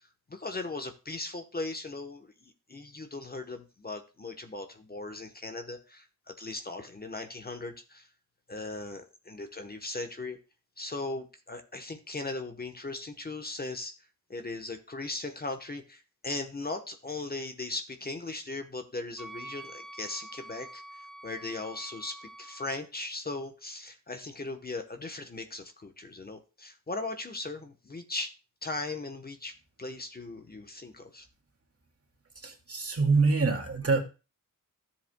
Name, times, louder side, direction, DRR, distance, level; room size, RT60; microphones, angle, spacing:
voice 1, 0.0-8.1 8.5-10.4 10.8-13.9 14.3-20.8 21.2-28.3 28.6-29.5 29.8-31.3, left 2 dB, 30° left, 5 dB, 1.0 m, -38 dB
Wind instrument woodwind instrument, 19.2-22.8, right 1 dB, ahead, 0.7 m, -46 dB
voice 2, 32.4-34.0, right 4 dB, 45° right, 3 dB, 2.1 m, -25 dB
13.5 x 7.5 x 2.2 m, 0.31 s
wide cardioid pair, 100°, 32 cm